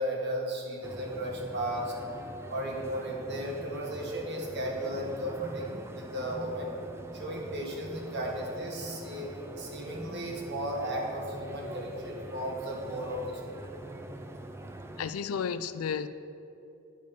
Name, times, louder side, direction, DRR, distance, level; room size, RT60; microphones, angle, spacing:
voice 1, 0.0-1.9 2.5-6.7 7.1-13.7, equal, 55° right, -1 dB, 1.5 m, -35 dB
sound 1, 0.8-15.1, right 1 dB, 10° right, 0.3 m, -43 dB
voice 2, 15.0-16.1, left 7 dB, 85° left, 13 dB, 0.4 m, -32 dB
10.5 x 5.3 x 5.3 m, 2.8 s
head